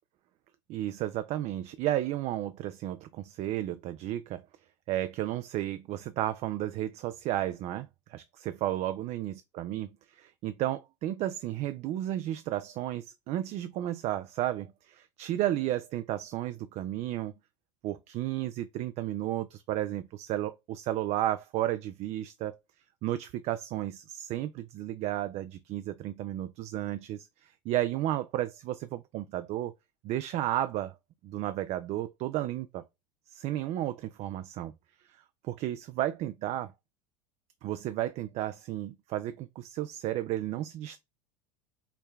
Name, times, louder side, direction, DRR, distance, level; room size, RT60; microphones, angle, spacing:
voice 1, 0.7-4.4 4.9-17.3 17.8-22.6 23.0-29.7 30.0-30.9 31.2-32.8 33.3-34.7 35.1-36.7 37.6-41.0, right 13 dB, 45° right, 0.4 m, -33 dB
4.6 x 2.2 x 3.3 m
hypercardioid pair, 90°, 16 cm